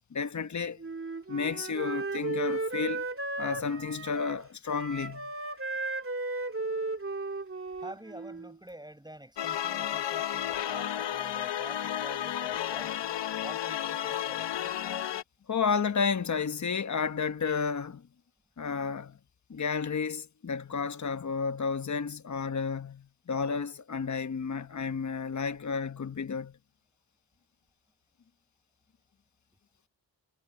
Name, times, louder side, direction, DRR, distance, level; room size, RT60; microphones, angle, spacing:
voice 1, 0.1-0.8 1.3-3.0 3.4-5.3 15.5-18.1 18.6-19.2 19.5-26.6, left 5 dB, 40° left, 1.2 m, -32 dB
Wind instrument woodwind instrument, 0.8-8.5, right 2 dB, 30° right, 3.0 m, -35 dB
voice 2, 7.8-13.1 13.4-14.5, right 1 dB, 10° right, 6.1 m, -47 dB
sound 1, 9.4-15.2, left 11 dB, 65° left, 0.9 m, -32 dB
cardioid pair, 60°, 45 cm